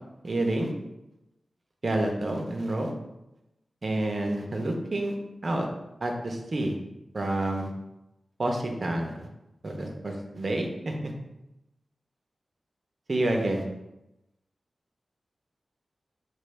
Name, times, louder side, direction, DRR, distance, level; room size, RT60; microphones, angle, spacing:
voice 1, 0.2-0.7 1.8-2.9 3.8-5.2 5.4-5.7 6.0-6.7 7.1-7.7 8.4-9.3 9.6-10.9 13.1-13.6, right 1 dB, 45° right, 2 dB, 0.7 m, -28 dB
6.0 x 2.6 x 3.3 m, 0.93 s
wide cardioid pair, 125°, 0 cm